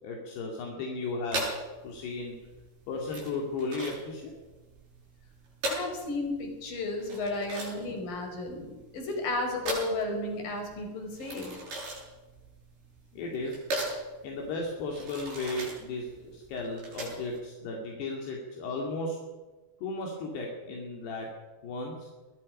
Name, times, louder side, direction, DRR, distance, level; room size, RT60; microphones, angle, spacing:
voice 1, 0.0-1.5 1.8-2.4 2.9-4.3 13.1-13.6 14.2-19.2 19.8-21.3 21.6-22.1, left 2 dB, 70° left, 0 dB, 4.7 m, -35 dB
sound 1, 1.3-17.4, right 1 dB, 60° right, 9.6 m, -38 dB
voice 2, 5.7-11.5, left 2 dB, 55° left, 3 dB, 6.3 m, -33 dB
22.5 x 20.5 x 5.6 m, 1.2 s
omnidirectional pair, 4.9 m